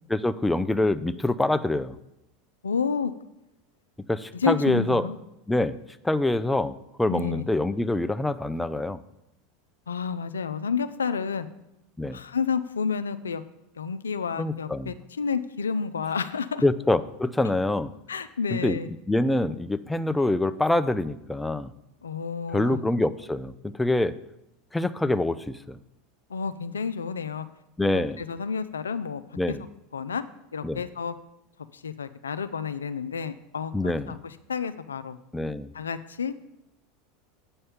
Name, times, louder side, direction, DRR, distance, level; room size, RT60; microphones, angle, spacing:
voice 1, 0.1-2.0 4.1-5.1 5.5-5.8 6.0-9.0 12.0-12.2 14.4-15.0 16.6-17.9 18.5-18.8 19.1-21.7 22.5-24.2 24.7-25.8 27.8-28.2 29.4-29.6 30.6-30.8 33.7-34.2 35.3-35.7, left 2 dB, 5° left, 13 dB, 0.5 m, -25 dB
voice 2, 2.6-3.1 4.3-5.1 7.1-7.5 9.9-11.5 12.1-13.4 13.8-16.6 18.1-18.9 22.0-22.8 26.3-27.5 27.9-29.2 29.5-29.6 29.9-30.2 30.5-31.1 31.7-35.2 35.7-36.3, left 6 dB, 85° left, 12 dB, 0.4 m, -30 dB
7.7 x 5.5 x 7.2 m, 0.88 s
hypercardioid pair, 85°, 0 cm